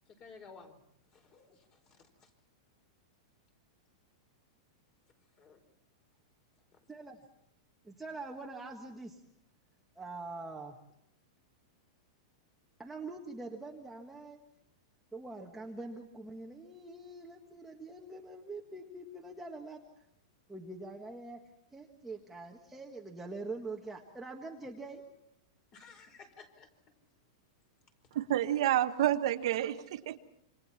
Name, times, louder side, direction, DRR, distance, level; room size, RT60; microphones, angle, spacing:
voice 1, 0.1-0.8 1.1-2.3 5.4-5.6 25.7-26.7, left 5 dB, 30° left, 4.6 m, -55 dB
voice 2, 6.9-7.2 7.8-9.2 9.9-10.8 12.8-14.4 15.1-19.8 20.5-21.4 21.7-25.0, right 3 dB, 5° right, 1.6 m, -44 dB
voice 3, 28.1-30.2, right 12 dB, 65° right, 1.3 m, -29 dB
27.5 x 25.5 x 4.4 m
supercardioid pair, 155°, 3 cm